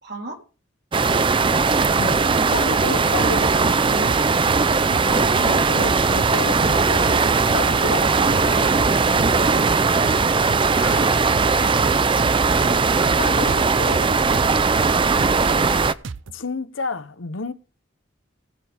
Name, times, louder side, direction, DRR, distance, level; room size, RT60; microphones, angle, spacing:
voice 1, 0.0-0.4 3.9-4.3, right 1 dB, 55° right, 3.6 m, -38 dB
sound 1, 0.9-15.9, right 4 dB, 25° right, 0.5 m, -19 dB
voice 2, 1.9-3.7 5.0-8.8 10.8-11.4 13.2-14.1 16.3-17.5, left 3 dB, 80° left, 1.0 m, -31 dB
sound 2, 2.8-3.4 3.6-3.8 4.0-5.1 5.3-5.5 5.8-6.8 7.0-7.2 7.5-8.5 8.8-8.9 9.2-10.6 10.9-13.6 13.9-14.1 14.3-16.4, right 4 dB, 75° right, 0.6 m, -33 dB
19.0 x 7.2 x 3.6 m
head